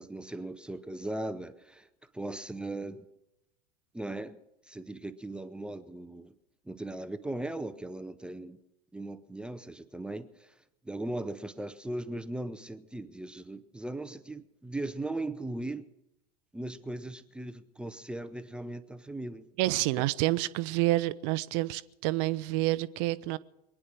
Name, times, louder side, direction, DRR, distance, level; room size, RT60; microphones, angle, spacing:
voice 1, 0.0-1.9 2.1-3.0 3.9-4.4 4.7-6.3 6.7-8.6 8.9-10.5 10.8-15.9 16.5-19.4, right 2 dB, 5° right, 0.6 m, -38 dB
voice 2, 19.6-23.4, right 18 dB, 40° right, 0.6 m, -28 dB
23.5 x 9.9 x 6.2 m
figure-of-eight pair, 85°, 21 cm